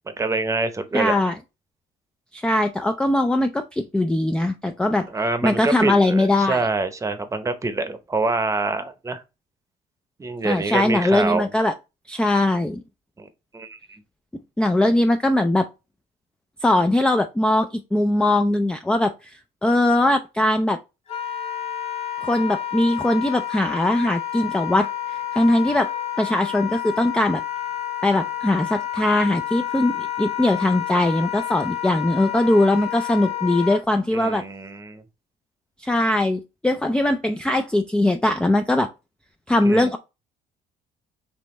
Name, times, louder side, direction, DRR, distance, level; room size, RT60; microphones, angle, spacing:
voice 1, 0.2-1.2 5.1-9.2 10.2-11.5 13.2-13.3 13.5-14.0 34.1-35.0 39.7-39.9, right 3 dB, 20° right, 0.8 m, -26 dB
voice 2, 0.9-1.4 2.3-5.1 5.4-6.6 10.4-11.7 12.1-12.8 14.6-15.7 16.6-20.8 22.2-25.9 26.2-27.4 28.0-34.4 35.8-38.9 39.5-40.0, left 1 dB, 5° left, 0.3 m, -21 dB
Wind instrument woodwind instrument, 21.1-33.8, left 11 dB, 35° left, 1.3 m, -29 dB
5.1 x 3.3 x 3.1 m
cardioid pair, 110°, 17 cm